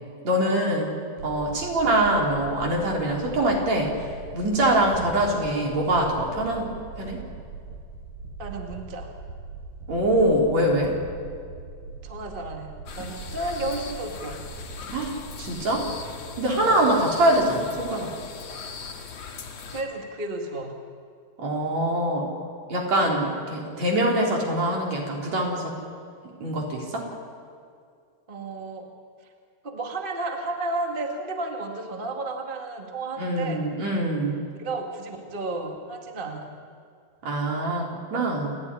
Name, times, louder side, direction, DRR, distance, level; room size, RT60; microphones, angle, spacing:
voice 1, 0.2-0.9 1.2-3.9 4.3-6.7 7.0-7.2 9.9-10.9 14.9-15.9 16.4-18.1 21.4-22.3 22.7-25.7 26.4-27.0 33.2-34.4 37.2-38.6, right 1 dB, 50° right, -1 dB, 4.8 m, -24 dB
sound 1, 1.2-15.7, right 3 dB, 65° right, 7.0 m, -41 dB
voice 2, 8.4-9.1 12.0-14.4 16.6-17.0 19.7-20.7 28.3-28.9 29.6-33.7 34.6-36.5, right 2 dB, 25° right, 2 dB, 1.0 m, -33 dB
sound 2, 12.9-19.8, left 5 dB, 50° left, 2.7 m, -39 dB
29.0 x 13.0 x 9.9 m, 2.3 s
omnidirectional pair, 4.2 m